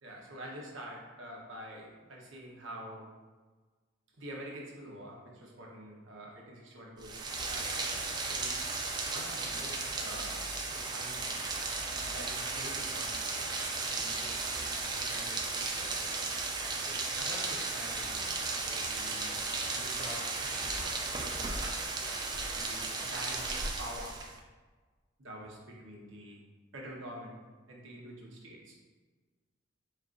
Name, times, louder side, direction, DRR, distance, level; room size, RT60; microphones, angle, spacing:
voice 1, 0.0-3.1 4.1-8.7 9.0-11.4 11.9-16.1 16.9-21.6 22.3-24.3 25.2-26.4 26.7-28.8, right 1 dB, 70° right, -2 dB, 0.9 m, -47 dB
Rain, 7.0-24.4, right 3 dB, 20° right, 0.3 m, -35 dB
4.4 x 2.5 x 3.7 m, 1.3 s
head